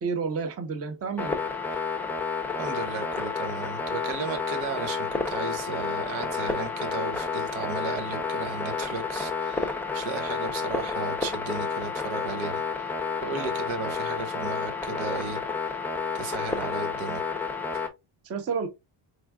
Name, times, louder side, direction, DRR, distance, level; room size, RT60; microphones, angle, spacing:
voice 1, 0.0-1.4 18.2-18.7, right 5 dB, 30° right, 0.8 m, -30 dB
sound 1, 1.2-17.9, left 5 dB, 5° left, 0.6 m, -30 dB
voice 2, 2.6-12.9 13.2-15.4 16.1-17.2 17.7-17.8, right 4 dB, 80° right, 1.5 m, -35 dB
4.9 x 3.5 x 2.3 m
cardioid pair, 140°, 48 cm